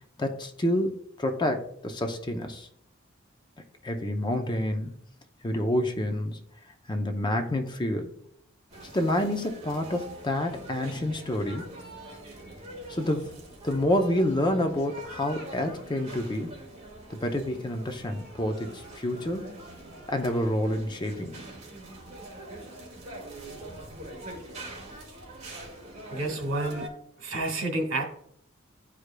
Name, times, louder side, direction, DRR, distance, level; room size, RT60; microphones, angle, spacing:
voice 1, 0.2-2.7 3.8-5.0 5.4-6.4 6.9-8.1 8.9-11.7 12.9-13.3 13.6-16.6 17.1-19.5 20.1-21.4, left 1 dB, 25° left, 5 dB, 0.6 m, -28 dB
sound 1, 8.7-26.9, right 1 dB, 35° right, 1.6 m, -44 dB
voice 2, 26.1-26.9 27.2-28.0, right 2 dB, 80° right, 2 dB, 1.7 m, -29 dB
11.5 x 4.8 x 2.2 m, 0.68 s
head